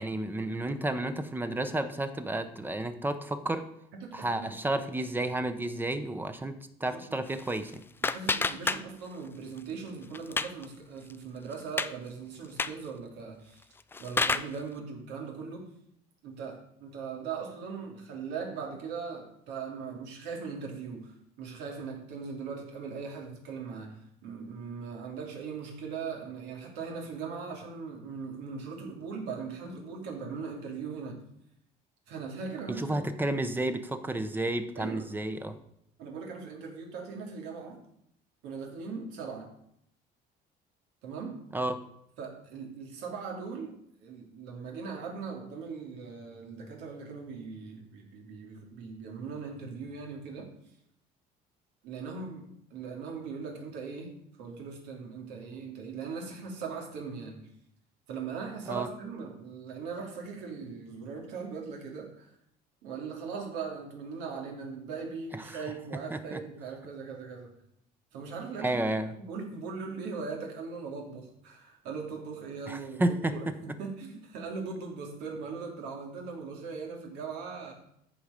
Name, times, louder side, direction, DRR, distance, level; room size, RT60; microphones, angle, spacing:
voice 1, 0.0-3.7 4.1-7.8 32.7-35.6 41.5-41.8 58.7-58.9 65.3-65.6 66.1-66.4 68.6-69.1 72.7-73.3, right 1 dB, 10° right, 9 dB, 0.8 m, -31 dB
voice 2, 3.9-4.5 6.8-7.2 8.0-13.6 14.0-15.7 16.2-31.2 32.1-33.0 34.7-35.1 36.0-37.8 38.4-39.5 41.0-41.4 42.2-43.7 44.0-50.5 51.8-54.1 54.4-57.4 58.1-62.3 62.8-67.5 68.1-68.8 69.2-77.7, right 5 dB, 90° right, 1 dB, 2.8 m, -39 dB
sound 1, 7.3-9.3 9.6-10.7 11.1-11.2 11.5-11.9 12.4-12.9 13.6-14.6, left 4 dB, 15° left, 0.4 m, -31 dB
14.0 x 4.8 x 5.2 m, 0.74 s
cardioid pair, 125°, 17 cm